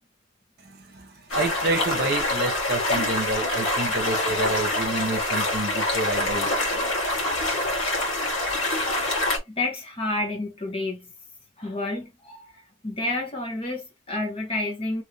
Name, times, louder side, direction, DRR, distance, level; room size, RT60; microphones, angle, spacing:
voice 1, 0.9-6.5, right 2 dB, 50° right, 0.9 m, -28 dB
sound 1, 1.3-9.4, left 1 dB, 70° left, 1.5 m, -25 dB
voice 2, 9.5-11.1 11.6-15.0, left 2 dB, 30° left, 1.0 m, -30 dB
3.1 x 2.7 x 3.2 m
head